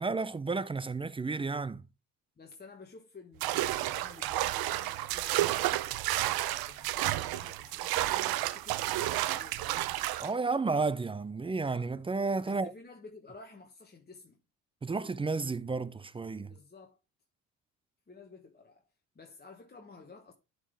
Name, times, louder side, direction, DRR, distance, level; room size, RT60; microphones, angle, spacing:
voice 1, 0.0-1.8 10.2-12.7 14.8-16.5, right 4 dB, 15° right, 0.4 m, -32 dB
voice 2, 2.4-6.1 6.7-9.9 12.4-14.4 16.5-17.0 18.1-18.9 19.1-20.3, left 4 dB, 25° left, 1.2 m, -52 dB
sound 1, 3.4-10.3, right 15 dB, 60° right, 0.6 m, -31 dB
11.0 x 4.0 x 3.3 m
hypercardioid pair, 55°, 40 cm